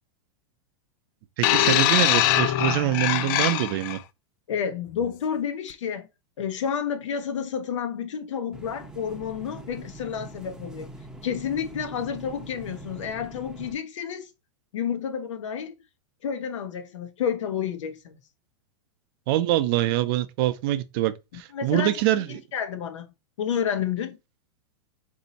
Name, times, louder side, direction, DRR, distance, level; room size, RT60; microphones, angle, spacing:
sound 1, 1.4-4.0 4.9-5.1, left 13 dB, 45° left, 0.4 m, -22 dB
voice 1, 1.4-4.0 19.3-22.4, right 14 dB, 50° right, 0.5 m, -24 dB
voice 2, 4.5-6.1 6.4-10.9 11.2-14.3 14.7-15.7 16.2-18.2 21.5-22.0 22.3-23.1 23.4-24.2, left 8 dB, 85° left, 0.9 m, -30 dB
sound 2, 8.5-13.7, right 2 dB, 5° right, 0.6 m, -43 dB
4.1 x 2.7 x 4.0 m
supercardioid pair, 145°, 15 cm